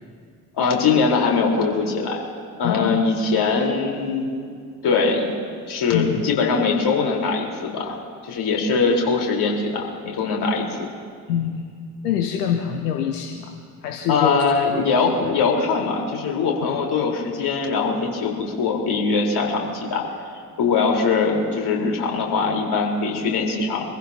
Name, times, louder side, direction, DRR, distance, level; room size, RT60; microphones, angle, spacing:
voice 1, 0.5-2.2 2.6-4.3 4.8-5.3 5.7-8.0 8.3-10.7 14.1-20.0 20.6-23.8, left 4 dB, 55° left, -1 dB, 4.4 m, -21 dB
voice 2, 2.6-3.0 5.9-6.3 11.3-11.8 12.0-14.5 14.7-14.9 15.2-15.4 16.6-16.8, left 9 dB, 80° left, 4 dB, 1.2 m, -25 dB
26.0 x 15.0 x 2.9 m, 2.2 s
hypercardioid pair, 50°, 46 cm